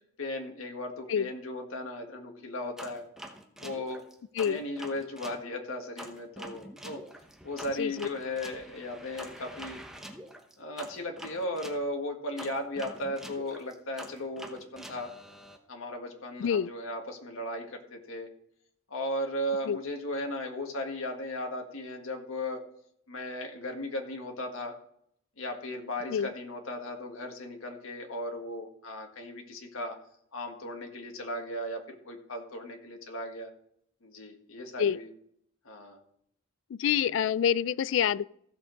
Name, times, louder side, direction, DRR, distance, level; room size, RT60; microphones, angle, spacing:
voice 1, 0.2-3.0 3.6-4.0 4.4-7.0 7.4-9.8 10.6-15.1 15.7-18.3 18.9-22.6 23.1-24.8 25.4-30.0 30.3-33.5 34.0-35.1 35.6-36.0, left 1 dB, 90° left, 1.7 m, -36 dB
sound 1, 2.8-5.4 6.0-11.8 12.4-15.6, equal, 5° right, 0.9 m, -46 dB
voice 2, 7.8-8.1 16.4-16.7 19.7-19.8 26.1-26.3 34.8-35.0 36.7-38.2, left 8 dB, 65° left, 0.3 m, -27 dB
15.5 x 6.9 x 4.0 m
head